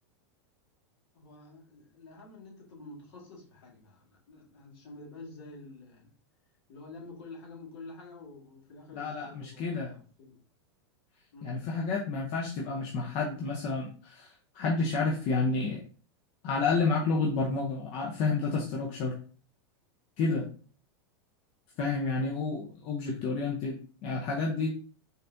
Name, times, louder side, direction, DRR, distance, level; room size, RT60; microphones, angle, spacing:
voice 1, 1.1-6.1 6.7-10.4 11.3-11.6, left 2 dB, 60° left, 1.8 m, -48 dB
voice 2, 8.9-9.9 11.4-15.8 16.4-19.1 20.2-20.5 21.8-24.7, left 4 dB, 45° left, 0.8 m, -30 dB
4.1 x 3.4 x 2.6 m
supercardioid pair, 130°, 14 cm